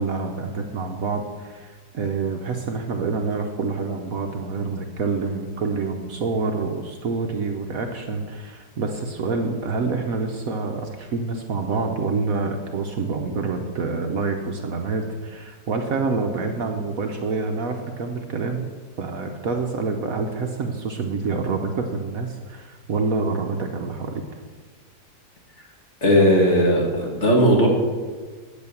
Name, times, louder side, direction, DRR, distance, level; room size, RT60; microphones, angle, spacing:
voice 1, 0.0-18.6 19.0-24.2, right 4 dB, 60° right, 4 dB, 1.1 m, -27 dB
voice 2, 26.0-27.7, equal, 40° left, -1 dB, 2.4 m, -17 dB
9.1 x 8.6 x 7.0 m, 1.5 s
omnidirectional pair, 1.9 m